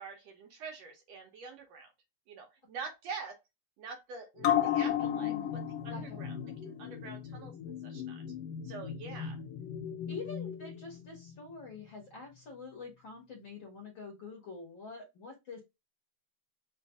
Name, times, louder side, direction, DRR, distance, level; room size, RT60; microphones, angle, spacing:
voice 1, 0.0-1.9 2.3-3.4 3.8-6.4 6.6-8.2 8.6-9.4, right 5 dB, 70° right, 1.8 m, -45 dB
sound 1, 4.4-11.3 11.7-11.8, left 10 dB, 80° left, 1.4 m, -35 dB
voice 2, 4.9-5.6 5.9-6.2 10.1-15.6, left 3 dB, 50° left, 1.6 m, -46 dB
4.6 x 2.5 x 3.4 m
omnidirectional pair, 3.5 m